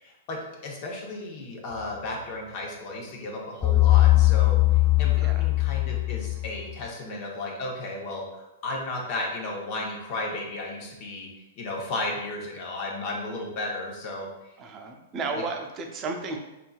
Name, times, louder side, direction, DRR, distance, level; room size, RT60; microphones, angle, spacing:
voice 1, 0.0-4.6 5.0-11.3 11.6-14.3, left 2 dB, 45° left, -1 dB, 1.0 m, -34 dB
sound 1, 3.6-6.7, left 18 dB, 15° left, 0.3 m, -20 dB
voice 2, 14.6-16.4, right 4 dB, 30° right, 3 dB, 0.6 m, -33 dB
5.5 x 2.6 x 2.4 m, 0.97 s
hypercardioid pair, 135°, 0 cm